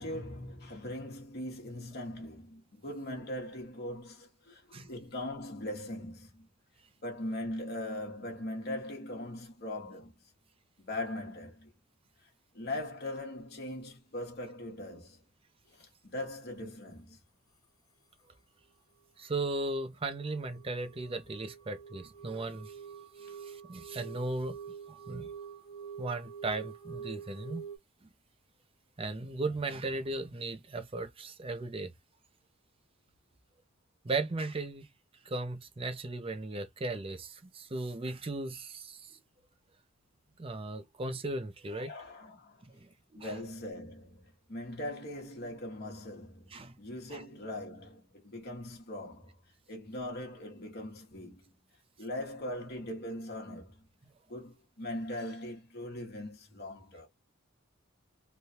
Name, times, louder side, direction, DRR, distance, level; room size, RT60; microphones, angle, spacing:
voice 1, 0.0-6.5 7.0-10.1 10.8-11.7 12.2-15.2 15.7-17.2 29.3-29.4 41.7-42.7 43.1-49.4 49.7-51.5 52.0-53.8 54.3-57.1, left 1 dB, 50° left, 1.1 m, -40 dB
voice 2, 19.2-22.8 23.2-24.6 24.9-25.3 26.0-27.7 28.0-28.1 29.0-31.9 34.0-34.9 35.2-39.2 40.4-41.9 42.6-43.3 46.5-46.7 47.1-47.2, right 2 dB, 25° right, 0.5 m, -37 dB
sound 1, 19.5-27.8, right 7 dB, 20° left, 0.5 m, -47 dB
3.1 x 2.3 x 2.7 m
head